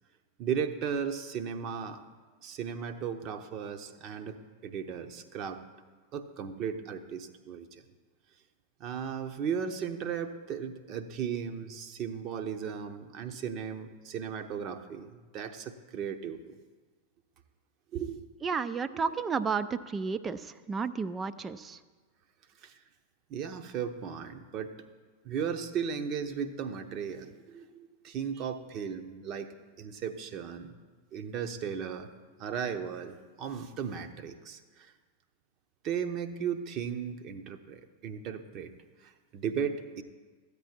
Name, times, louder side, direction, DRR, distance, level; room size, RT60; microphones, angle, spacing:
voice 1, 0.4-2.0 2.4-5.6 6.1-7.8 8.8-16.6 17.9-18.3 18.9-19.1 22.6-22.8 23.3-24.8 25.2-29.5 29.8-30.7 31.1-32.1 32.4-34.9 35.8-38.7 39.0-40.0, right 7 dB, 35° right, 8 dB, 0.8 m, -36 dB
voice 2, 18.4-21.8, right 5 dB, 20° right, 13 dB, 0.4 m, -32 dB
14.0 x 8.3 x 4.4 m, 1.4 s
figure-of-eight pair, 90°, 0 cm